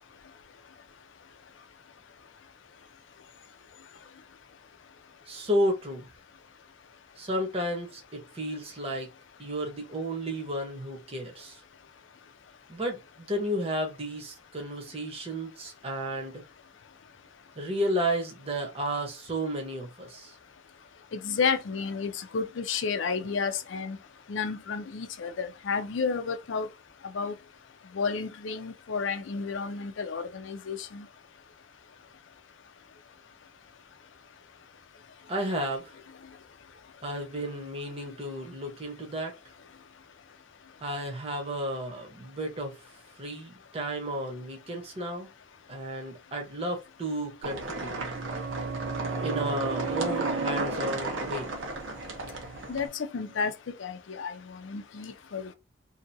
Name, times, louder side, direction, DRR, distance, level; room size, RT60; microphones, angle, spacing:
voice 1, 5.3-6.1 7.2-9.1 9.4-11.6 12.7-16.4 17.6-20.3 35.3-35.9 37.0-39.3 40.8-42.8 43.2-45.3 45.7-48.0 49.2-51.5, equal, 30° right, 0.9 m, -32 dB
voice 2, 21.1-24.0 24.3-26.7 27.1-27.4 27.9-31.1 52.7-53.5 53.8-55.5, left 5 dB, 70° left, 0.5 m, -31 dB
sound 1, 47.4-52.9, right 2 dB, 85° right, 0.9 m, -34 dB
sound 2, 47.6-53.0 53.3-53.4, right 5 dB, 65° right, 0.4 m, -37 dB
2.7 x 2.6 x 2.6 m
head